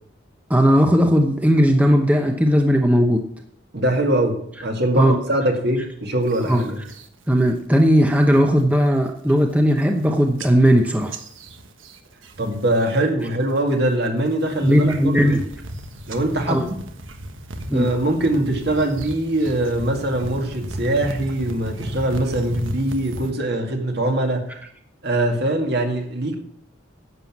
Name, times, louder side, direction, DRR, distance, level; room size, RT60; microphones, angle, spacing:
voice 1, 0.5-3.3 5.0-5.2 6.5-6.6 7.3-11.2 14.6-15.4 16.5-16.6 17.7-17.9, equal, 10° right, 3 dB, 0.8 m, -17 dB
voice 2, 3.7-6.8 12.4-15.3 16.1-16.8 17.7-24.5 25.0-26.3, right 1 dB, 55° right, 3 dB, 2.1 m, -22 dB
sound 1, 6.3-7.1 7.5-7.9 8.2-8.6 9.1-9.2 9.4-10.1 10.4-13.0 13.2-13.7 14.3-23.3, right 1 dB, 75° right, 1.4 m, -35 dB
11.0 x 7.7 x 7.3 m, 0.68 s
head